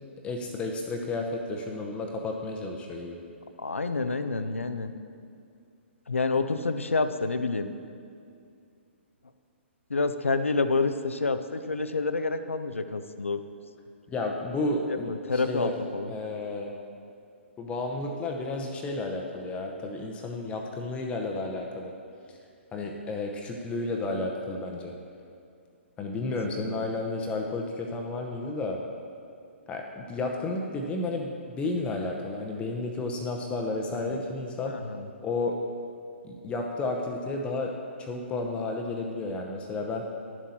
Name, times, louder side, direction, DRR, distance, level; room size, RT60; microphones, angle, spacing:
voice 1, 0.2-3.2 14.1-15.7 16.1-16.7 17.6-21.9 22.3-22.4 22.7-24.9 26.0-28.8 29.7-34.8 35.2-35.6 36.2-37.7 38.0-40.0, left 2 dB, 15° left, 1 dB, 0.8 m, -32 dB
voice 2, 3.6-4.9 6.1-7.7 9.9-13.4 14.9-16.1 26.5-26.8 33.9-34.2 34.7-35.1, left 3 dB, 85° left, 10 dB, 0.6 m, -28 dB
11.0 x 7.4 x 4.3 m, 2.4 s
figure-of-eight pair, 125°, 7 cm